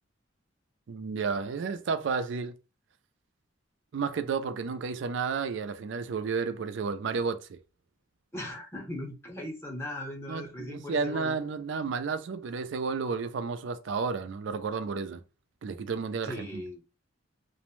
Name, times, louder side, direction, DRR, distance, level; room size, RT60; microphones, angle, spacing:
voice 1, 0.9-2.6 3.9-7.6 10.3-15.2 15.6-16.6, right 5 dB, 65° right, 0.4 m, -32 dB
voice 2, 8.3-11.4 16.2-16.8, left 1 dB, 15° left, 0.7 m, -38 dB
2.5 x 2.0 x 3.1 m
head